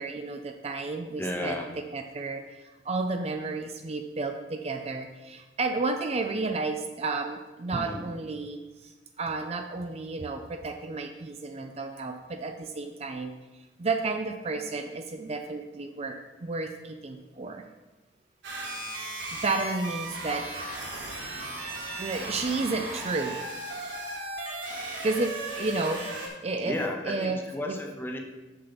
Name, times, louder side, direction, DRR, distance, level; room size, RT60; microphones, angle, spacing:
voice 1, 0.0-1.6 1.9-17.6 19.3-20.5 22.0-23.4 25.0-26.8 27.0-27.8, right 3 dB, 35° right, 6 dB, 0.4 m, -32 dB
voice 2, 1.2-1.7 7.7-8.1 26.6-28.2, left 1 dB, 10° left, 2 dB, 0.7 m, -33 dB
sound 1, 18.4-26.3, right 1 dB, 75° right, 2.5 m, -36 dB
7.2 x 6.5 x 4.0 m, 1.2 s
head